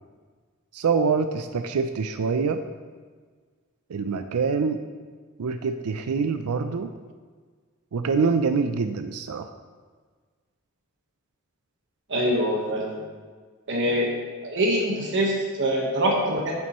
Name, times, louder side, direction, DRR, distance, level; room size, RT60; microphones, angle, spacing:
voice 1, 0.7-2.6 3.9-4.8 5.4-6.9 7.9-9.5, right 5 dB, 85° right, 8 dB, 0.4 m, -25 dB
voice 2, 12.1-13.0 13.7-14.1 14.4-16.6, equal, 55° right, -1 dB, 1.3 m, -24 dB
10.5 x 7.1 x 3.1 m, 1.5 s
head